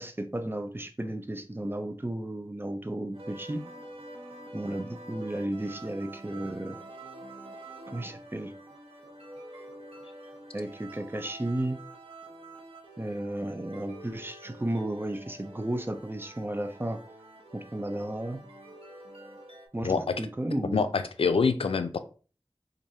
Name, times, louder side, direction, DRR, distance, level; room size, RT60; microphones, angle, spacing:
voice 1, 0.0-3.6 4.5-6.8 7.9-8.5 10.5-11.8 13.0-17.0 17.5-18.4 19.7-19.9 20.2-20.8, right 1 dB, 25° right, 7 dB, 0.5 m, -33 dB
sound 1, 3.1-19.7, right 1 dB, 90° right, 0.8 m, -47 dB
voice 2, 20.7-22.0, left 5 dB, 85° left, 10 dB, 0.3 m, -25 dB
4.6 x 2.6 x 2.7 m, 0.37 s
wide cardioid pair, 40°, 9 cm